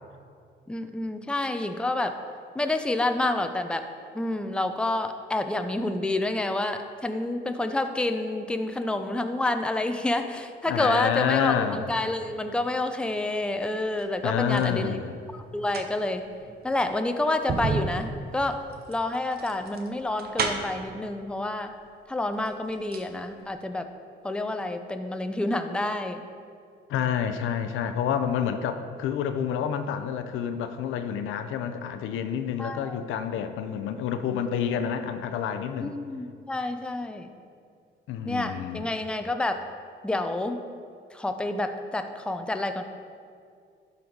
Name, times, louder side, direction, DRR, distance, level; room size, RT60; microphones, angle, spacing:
voice 1, 0.7-2.1 2.5-3.9 4.1-15.0 15.3-16.3 16.6-21.7 22.1-23.9 24.2-26.2 32.6-33.0 35.8-37.3 38.3-39.7 40.0-40.6 41.1-42.8, left 2 dB, 5° left, 7 dB, 0.5 m, -28 dB
voice 2, 10.7-11.9 14.2-15.2 26.9-36.0 38.1-38.8, left 8 dB, 85° left, 8 dB, 0.6 m, -28 dB
sound 1, 13.8-14.8 15.5-20.9 21.8-21.9 22.3-23.1 23.4-23.5, right 4 dB, 50° right, 0.8 m, -33 dB
12.0 x 4.0 x 4.6 m, 2.3 s
cardioid pair, 90°, 20 cm